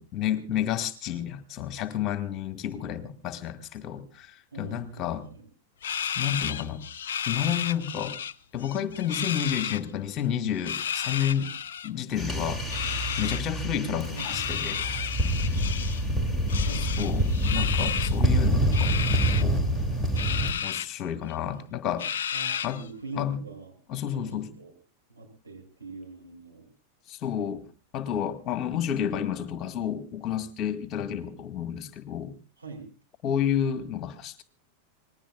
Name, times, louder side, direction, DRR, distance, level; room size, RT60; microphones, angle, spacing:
voice 1, 0.0-5.3 6.2-6.8 7.3-8.2 8.5-11.5 11.8-12.7 13.2-14.8 16.7-19.6 20.6-22.1 22.6-22.8 23.2-23.4 23.9-24.5 27.1-27.7 27.9-32.3 33.2-34.4, left 9 dB, 35° left, 9 dB, 1.9 m, -30 dB
voice 2, 4.5-4.9 5.3-5.4 14.1-14.4 16.6-16.9 22.3-23.7 24.1-24.3 24.6-24.7 25.1-26.6 32.6-32.9, right 4 dB, 80° right, 1 dB, 6.6 m, -42 dB
sound 1, 5.8-8.3 8.6-9.8 10.5-11.9 12.7-13.4 14.2-16.0 16.5-18.2 18.7-19.4 20.2-20.9 21.3-21.4 22.0-22.9, left 8 dB, 60° left, 0.7 m, -32 dB
sound 2, 12.2-20.5, right 1 dB, 10° right, 2.9 m, -26 dB
26.5 x 20.0 x 2.4 m, 0.34 s
figure-of-eight pair, 90°, 0 cm